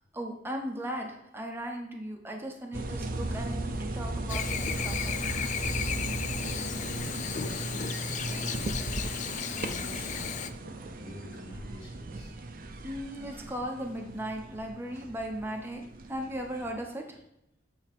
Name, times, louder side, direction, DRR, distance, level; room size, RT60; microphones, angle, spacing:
voice 1, 0.1-5.2 12.8-17.2, equal, 10° right, 2 dB, 0.7 m, -37 dB
sound 1, 2.7-16.7, right 2 dB, 50° right, 0.5 m, -36 dB
Chirp tweet / Buzz, 4.3-10.5, left 8 dB, 40° left, 0.3 m, -35 dB
voice 2, 6.7-12.3, equal, 60° left, -4 dB, 2.3 m, -48 dB
8.3 x 3.5 x 3.5 m, 0.82 s
head